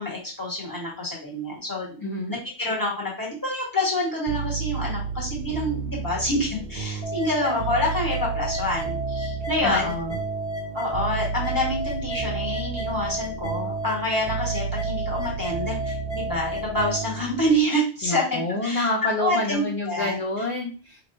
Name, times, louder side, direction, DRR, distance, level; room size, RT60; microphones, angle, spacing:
voice 1, 0.0-9.9 10.7-18.9 19.2-20.2, left 1 dB, 20° left, -3 dB, 1.5 m, -27 dB
voice 2, 2.0-2.3 9.6-10.2 18.0-21.0, left 2 dB, 35° left, -2 dB, 0.7 m, -28 dB
sound 1, 4.3-17.6, right 6 dB, 55° right, 0.6 m, -32 dB
sound 2, 7.0-17.0, right 1 dB, 15° right, 1.0 m, -32 dB
4.9 x 2.9 x 2.6 m, 0.36 s
omnidirectional pair, 1.1 m